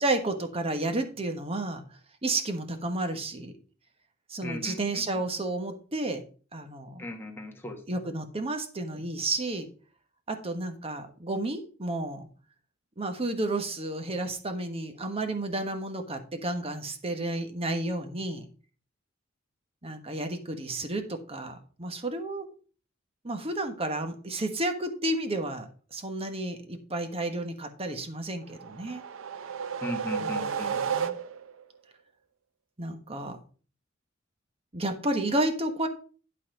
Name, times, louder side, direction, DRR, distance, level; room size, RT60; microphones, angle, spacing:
voice 1, 0.0-1.8 2.2-3.5 4.3-6.2 6.5-7.0 7.9-9.7 10.3-12.3 13.0-18.5 19.8-22.5 23.2-29.0 30.2-31.1 32.8-33.4 34.7-35.9, right 2 dB, 30° right, 6 dB, 1.2 m, -31 dB
voice 2, 4.4-5.2 7.0-8.0 8.9-9.0 29.8-30.8, left 1 dB, 10° left, 2 dB, 1.4 m, -38 dB
sound 1, 28.5-31.6, right 7 dB, 85° right, 0.6 m, -32 dB
11.5 x 4.1 x 5.1 m, 0.39 s
head